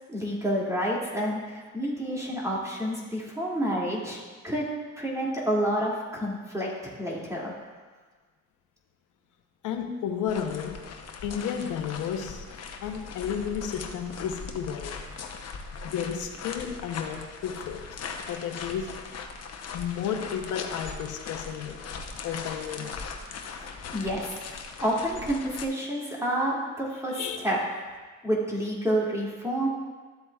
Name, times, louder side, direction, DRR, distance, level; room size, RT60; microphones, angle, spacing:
voice 1, 0.1-4.7 5.0-7.5 23.9-24.4 24.8-27.6 28.2-29.7, equal, 10° right, -4 dB, 2.3 m, -29 dB
voice 2, 9.6-10.9 11.2-12.5 12.8-15.1 15.8-19.0 19.7-21.8 22.2-23.1 27.1-27.4, left 8 dB, 85° left, 6 dB, 0.9 m, -33 dB
sound 1, 10.3-25.7, left 5 dB, 55° left, 0.9 m, -39 dB
12.5 x 7.6 x 2.3 m, 1.4 s
cardioid pair, 90°, 30 cm